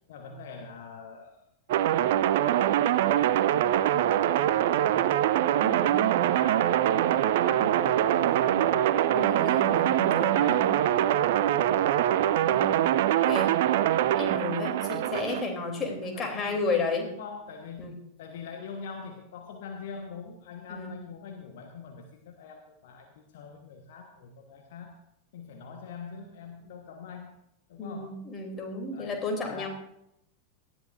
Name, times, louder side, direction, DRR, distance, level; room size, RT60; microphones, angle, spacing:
voice 1, 0.1-1.5 2.8-5.2 5.7-9.0 10.3-12.1 16.1-16.7 17.1-17.9 18.2-25.0 25.3-27.3 27.7-28.2 28.9-29.7, left 5 dB, 55° left, 3 dB, 1.3 m, -44 dB
sound 1, 1.7-15.4, right 12 dB, 55° right, 0.5 m, -24 dB
voice 2, 5.6-6.1 9.1-10.8 12.5-12.9 13.2-13.5 14.2-17.1 17.8-17.9 20.7-20.9 27.8-29.7, left 3 dB, 25° left, 3 dB, 3.2 m, -32 dB
18.5 x 13.0 x 2.6 m, 0.78 s
figure-of-eight pair, 90°, 0 cm